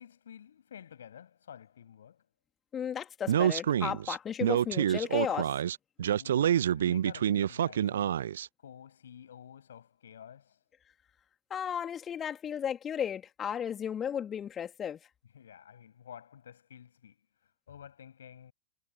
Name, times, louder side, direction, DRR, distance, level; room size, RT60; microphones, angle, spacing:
voice 1, 0.0-2.2 6.1-8.2 8.6-10.6 15.3-17.2 17.4-18.5, left 9 dB, 65° left, 7.3 m, -51 dB
voice 2, 2.7-5.5 11.5-15.0, left 8 dB, 25° left, 2.8 m, -34 dB
Speech, 3.3-8.5, right 10 dB, 65° right, 0.9 m, -27 dB
figure-of-eight pair, 90°, 0 cm